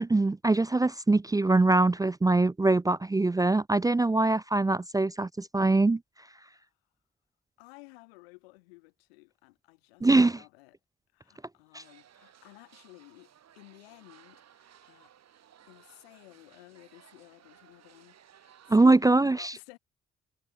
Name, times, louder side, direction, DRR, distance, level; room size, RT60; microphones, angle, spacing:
voice 1, 0.0-6.0 10.0-10.4 11.7-11.8 18.7-19.5, right 2 dB, 10° right, 0.5 m, -23 dB
voice 2, 7.6-10.8 11.1-15.1 15.6-19.8, left 24 dB, 80° left, 3.8 m, -55 dB
sound 1, 11.8-19.1, right 9 dB, 60° right, 7.8 m, -59 dB
hypercardioid pair, 40°, 30 cm